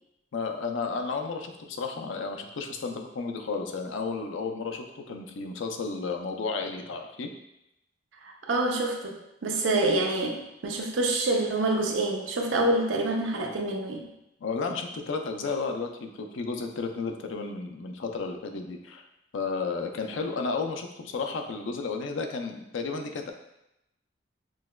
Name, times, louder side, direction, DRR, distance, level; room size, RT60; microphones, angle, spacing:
voice 1, 0.3-7.3 14.4-19.1 19.3-23.3, left 4 dB, 80° left, 4 dB, 0.5 m, -32 dB
voice 2, 8.2-14.1, right 2 dB, 90° right, 1 dB, 0.6 m, -27 dB
6.1 x 2.2 x 2.2 m, 0.87 s
head